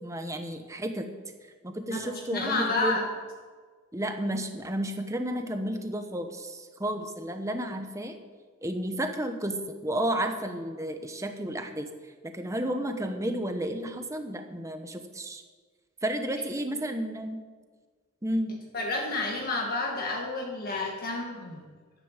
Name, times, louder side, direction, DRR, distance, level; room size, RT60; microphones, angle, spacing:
voice 1, 0.0-1.1 1.6-3.0 3.9-8.2 8.6-15.4 16.0-17.4 18.2-18.5, right 1 dB, 15° right, 6 dB, 1.1 m, -32 dB
voice 2, 2.3-3.0 18.7-21.6, left 2 dB, 45° left, 0 dB, 1.6 m, -30 dB
11.5 x 10.0 x 7.3 m, 1.5 s
head